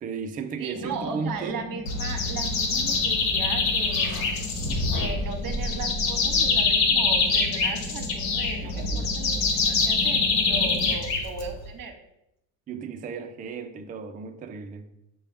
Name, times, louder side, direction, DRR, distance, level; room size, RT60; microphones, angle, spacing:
voice 1, 0.0-1.7 8.7-9.1 12.7-14.9, right 5 dB, 20° right, 0.3 m, -35 dB
voice 2, 0.6-4.2 4.9-12.0, right 5 dB, 45° right, 1.0 m, -37 dB
sound 1, 0.7-11.0, left 4 dB, 25° left, 0.8 m, -38 dB
sound 2, 1.9-11.7, left 4 dB, 60° left, 1.1 m, -25 dB
sound 3, 3.8-4.2 4.6-7.1, equal, 45° left, 1.3 m, -32 dB
6.4 x 2.3 x 3.5 m
hypercardioid pair, 65°, 49 cm